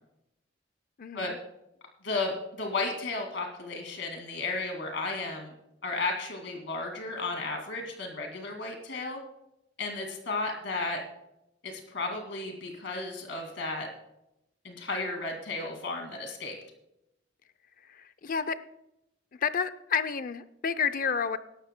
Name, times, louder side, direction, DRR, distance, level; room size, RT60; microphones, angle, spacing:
voice 1, 1.0-1.4 17.8-18.6 19.4-21.4, left 6 dB, 45° left, 14 dB, 0.5 m, -30 dB
voice 2, 2.0-5.5 5.8-9.2 9.8-11.0 11.6-13.9 14.6-16.6, left 3 dB, 65° left, 3 dB, 2.3 m, -34 dB
24.0 x 12.0 x 2.2 m, 0.85 s
head